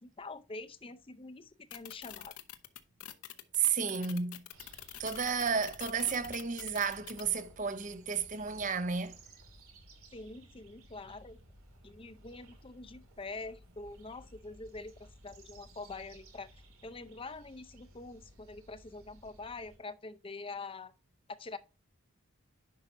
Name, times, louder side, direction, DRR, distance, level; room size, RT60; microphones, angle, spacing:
voice 1, 0.0-2.3 10.1-11.4 11.8-16.5 16.8-20.9 21.3-21.6, left 3 dB, 25° left, 0.6 m, -45 dB
sound 1, 1.7-7.2, left 12 dB, 90° left, 0.8 m, -46 dB
voice 2, 3.5-4.4 5.0-9.2, right 6 dB, 35° right, 0.7 m, -32 dB
sound 2, 4.5-19.8, right 1 dB, 75° right, 2.3 m, -57 dB
10.5 x 5.5 x 2.6 m
head